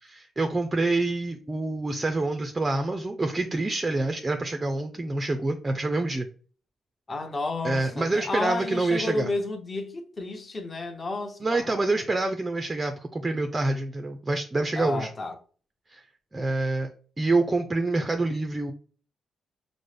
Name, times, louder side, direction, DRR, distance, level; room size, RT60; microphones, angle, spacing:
voice 1, 0.0-6.3 7.6-9.3 11.4-15.1 15.9-16.0 16.3-16.9 17.2-18.7, right 2 dB, 20° right, 0.4 m, -27 dB
voice 2, 7.1-11.9 14.8-15.4, left 3 dB, 30° left, 0.7 m, -32 dB
5.2 x 2.0 x 3.2 m
cardioid pair, 115°, 0 cm